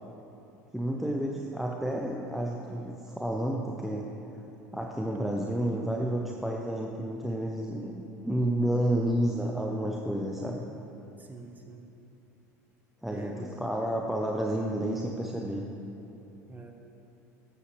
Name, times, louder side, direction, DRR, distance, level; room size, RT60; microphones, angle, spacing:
voice 1, 0.7-4.1 4.3-4.4 4.7-10.7 13.0-15.6, right 1 dB, ahead, 0 dB, 0.8 m, -30 dB
voice 2, 11.2-11.9 13.1-13.5 16.5-16.7, right 3 dB, 20° right, 3 dB, 1.4 m, -45 dB
15.0 x 7.9 x 3.4 m, 2.9 s
hypercardioid pair, 75°, 9 cm